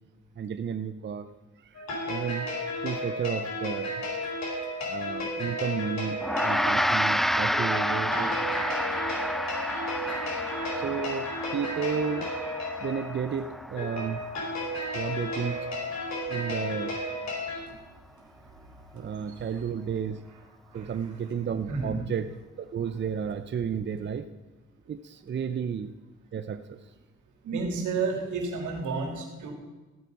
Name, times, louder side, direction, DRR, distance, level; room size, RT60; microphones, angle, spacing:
voice 1, 0.4-1.3 1.6-2.5 2.8-4.0 4.8-8.2 10.8-12.3 12.8-14.2 14.9-15.7 16.3-17.0 18.9-20.2 20.7-24.3 24.9-25.9 26.3-26.8, right 7 dB, 40° right, 9 dB, 0.7 m, -32 dB
sound 1, 1.8-17.6, left 1 dB, 60° left, 4.6 m, -33 dB
Gong, 6.2-15.7, equal, ahead, 0.3 m, -30 dB
voice 2, 17.4-17.7 18.9-19.4 20.7-20.9 21.7-22.0 27.4-29.5, right 4 dB, 75° right, 2 dB, 3.3 m, -32 dB
15.0 x 9.1 x 5.5 m, 1.2 s
cardioid pair, 90°, 30 cm